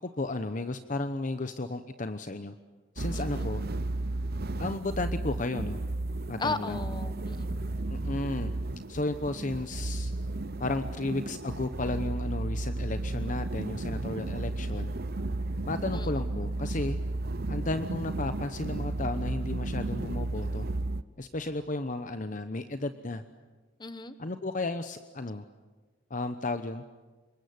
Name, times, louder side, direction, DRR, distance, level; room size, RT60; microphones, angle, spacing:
voice 1, 0.0-2.5 2.9-3.6 4.6-5.8 6.3-6.8 7.9-8.5 8.9-10.1 10.6-14.9 15.6-17.0 17.5-20.7 21.2-23.2 24.2-25.4 26.1-26.8, left 2 dB, 40° left, 10 dB, 0.9 m, -33 dB
sound 1, 3.0-21.0, right 2 dB, 55° right, 0.9 m, -33 dB
voice 2, 3.1-3.5 6.4-7.7 15.9-16.2 23.8-24.1, left 3 dB, 25° left, 11 dB, 1.4 m, -36 dB
26.5 x 22.5 x 9.6 m, 1.3 s
head